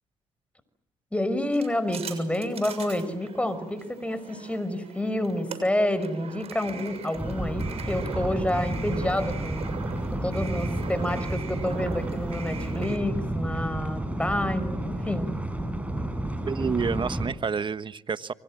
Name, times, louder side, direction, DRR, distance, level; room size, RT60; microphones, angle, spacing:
voice 1, 1.1-9.7 10.2-15.3, left 1 dB, 10° left, 5.6 m, -29 dB
sound 1, 1.5-13.0, right 5 dB, 65° right, 6.9 m, -41 dB
sound 2, 7.1-17.3, right 1 dB, 10° right, 7.8 m, -31 dB
voice 2, 16.5-18.3, right 5 dB, 45° right, 1.4 m, -29 dB
29.5 x 24.5 x 7.6 m
supercardioid pair, 60°, 11 cm